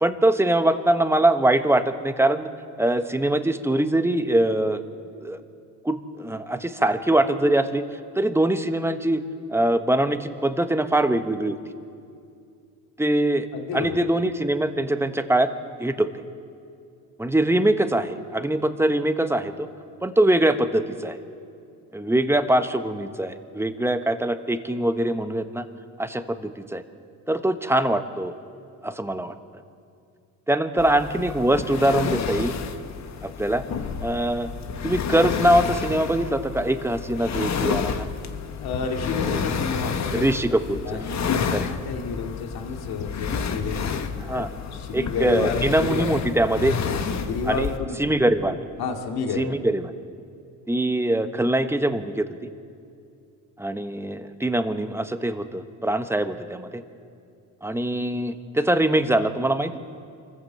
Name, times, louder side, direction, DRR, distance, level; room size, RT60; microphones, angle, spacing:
voice 1, 0.0-2.5 2.8-4.8 5.2-5.4 5.8-7.8 8.1-9.2 9.5-11.6 13.0-13.5 13.7-15.5 15.8-16.1 17.2-19.7 20.0-21.2 21.9-25.7 26.0-26.8 27.3-28.3 28.8-29.3 30.5-32.5 33.2-33.6 34.0-34.5 34.8-38.1 39.2-39.5 40.1-41.0 41.5-41.7 44.2-44.5 44.9-46.8 47.4-47.7 48.0-48.6 49.3-49.9 50.7-52.5 53.6-56.8 57.6-59.8, right 1 dB, 5° right, 9 dB, 1.1 m, -23 dB
voice 2, 13.5-14.0 38.6-40.3 40.8-46.1 47.0-48.1 48.8-49.6, left 4 dB, 70° left, 3 dB, 2.5 m, -30 dB
sound 1, 30.8-47.8, left 6 dB, 45° left, 1.3 m, -30 dB
25.0 x 14.5 x 7.6 m, 2.4 s
cardioid pair, 90°, 38 cm